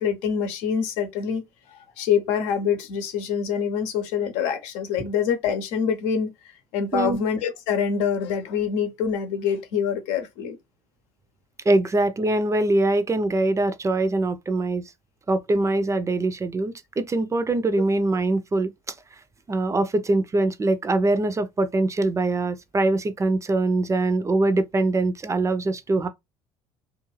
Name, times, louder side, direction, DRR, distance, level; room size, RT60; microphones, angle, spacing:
voice 1, 0.0-1.4 1.7-6.3 6.7-10.6, left 7 dB, 75° left, 0.8 m, -25 dB
voice 2, 11.6-14.8 15.3-18.9 19.5-26.1, right 2 dB, 25° right, 0.5 m, -23 dB
2.4 x 2.4 x 3.1 m
hypercardioid pair, 65°, 13 cm